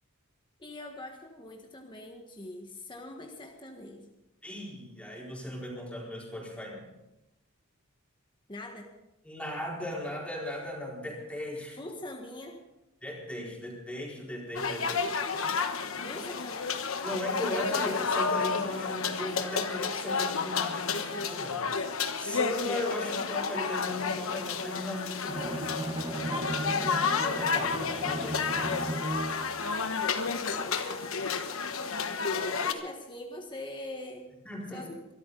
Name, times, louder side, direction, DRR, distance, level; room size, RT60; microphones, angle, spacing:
voice 1, 0.6-4.1 8.5-8.9 11.8-12.6 16.0-16.8 30.5-31.1 32.2-34.3 34.7-34.9, left 1 dB, 20° left, 1 dB, 1.6 m, -43 dB
voice 2, 4.4-6.9 9.2-11.8 13.0-15.1 17.0-21.6 22.2-26.3 26.6-28.6 34.4-34.9, left 1 dB, 5° left, -3 dB, 4.5 m, -37 dB
sound 1, 14.6-32.7, left 5 dB, 70° left, 1.2 m, -31 dB
Bowed string instrument, 25.2-29.6, right 2 dB, 25° right, 1.3 m, -36 dB
23.5 x 13.5 x 4.0 m, 0.93 s
head